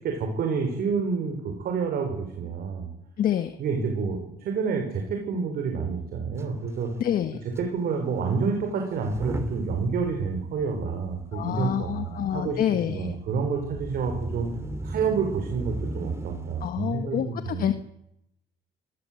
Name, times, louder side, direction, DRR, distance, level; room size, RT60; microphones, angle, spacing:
voice 1, 0.0-2.9 3.6-6.9 7.6-12.6 12.9-14.5 14.8-17.7, right 5 dB, 65° right, 3 dB, 5.5 m, -28 dB
voice 2, 3.2-3.5 7.0-7.4 11.3-13.2 16.6-17.7, left 10 dB, 55° left, 8 dB, 1.6 m, -27 dB
Motor vehicle (road) / Engine starting / Accelerating revving vroom, 6.4-6.5 6.7-6.9 7.5-7.6 8.9-16.7, right 2 dB, 15° right, 2.9 m, -37 dB
26.0 x 19.5 x 8.0 m, 0.80 s
cardioid pair, 110°, 17 cm